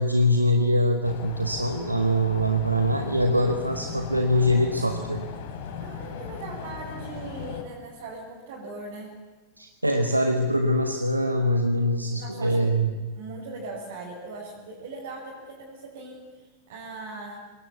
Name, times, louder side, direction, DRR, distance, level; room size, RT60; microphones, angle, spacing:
voice 1, 0.0-5.2 9.6-13.1, equal, 85° right, 5 dB, 1.5 m, -23 dB
sound 1, 1.0-7.6, left 7 dB, 55° left, 3.3 m, -37 dB
voice 2, 5.8-9.2 12.1-12.9 13.2-17.4, right 2 dB, 55° right, -4 dB, 5.7 m, -40 dB
24.5 x 20.5 x 8.4 m, 1.3 s
figure-of-eight pair, 90°, 0 cm